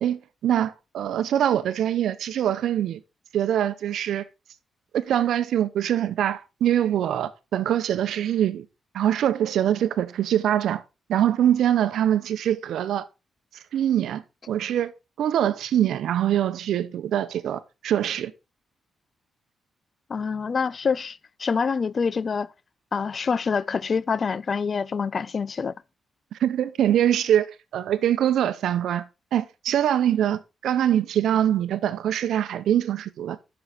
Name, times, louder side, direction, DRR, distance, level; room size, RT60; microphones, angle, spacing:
voice 1, 0.0-3.0 3.3-4.2 4.9-8.7 8.9-10.8 11.1-13.1 13.7-14.9 15.2-18.3 26.4-33.4, right 10 dB, 85° right, 0.7 m, -23 dB
voice 2, 20.1-22.5 22.9-25.8, left 5 dB, 45° left, 0.4 m, -26 dB
7.9 x 6.2 x 4.0 m
cardioid pair, 105°, 0 cm